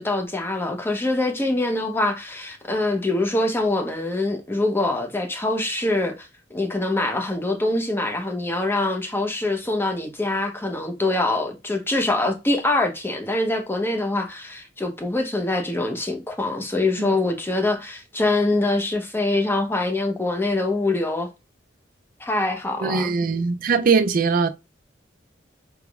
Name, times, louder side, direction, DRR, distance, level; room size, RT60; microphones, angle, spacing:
voice 1, 0.0-21.3 22.2-23.1, left 2 dB, 10° left, 0.7 m, -24 dB
voice 2, 22.8-24.5, right 5 dB, 50° right, 0.4 m, -21 dB
5.0 x 3.4 x 2.3 m
head